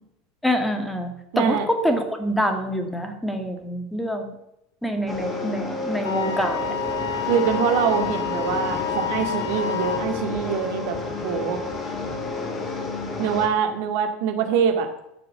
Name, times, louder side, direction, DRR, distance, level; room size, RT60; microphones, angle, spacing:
voice 1, 0.4-4.3 4.8-6.7, equal, 5° left, 6 dB, 2.3 m, -26 dB
voice 2, 1.3-1.7 7.3-11.0 11.2-11.6 13.2-14.9, right 7 dB, 60° right, 6 dB, 2.0 m, -24 dB
sound 1, 5.1-13.5, left 3 dB, 25° left, 2.5 m, -30 dB
Wind instrument woodwind instrument, 6.0-10.0, left 10 dB, 75° left, 1.4 m, -30 dB
14.5 x 6.8 x 6.7 m, 0.83 s
figure-of-eight pair, 80°, 0 cm